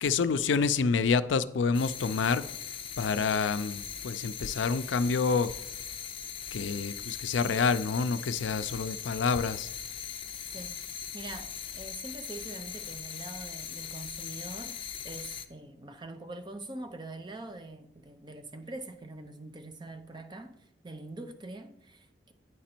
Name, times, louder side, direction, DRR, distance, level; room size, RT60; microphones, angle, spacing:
voice 1, 0.0-2.4 3.0-5.5 6.5-9.7, left 5 dB, 90° left, 0.4 m, -28 dB
sound 1, 1.7-15.5, left 8 dB, 30° left, 0.5 m, -40 dB
voice 2, 10.5-22.3, right 2 dB, 25° right, 0.6 m, -44 dB
9.7 x 5.1 x 4.4 m
head